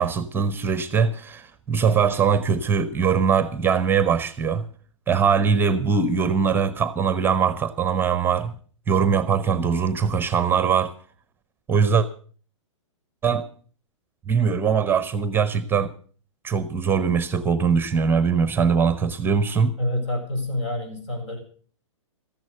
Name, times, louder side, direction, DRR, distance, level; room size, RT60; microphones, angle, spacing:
voice 1, 0.0-4.6 5.1-8.6 8.9-10.9 11.7-12.1 13.2-13.5 14.3-15.9 16.4-19.7, right 6 dB, 15° right, 0.8 m, -21 dB
voice 2, 19.8-21.4, left 1 dB, 65° left, 6.9 m, -27 dB
14.0 x 10.5 x 6.8 m
figure-of-eight pair, 110°, 16 cm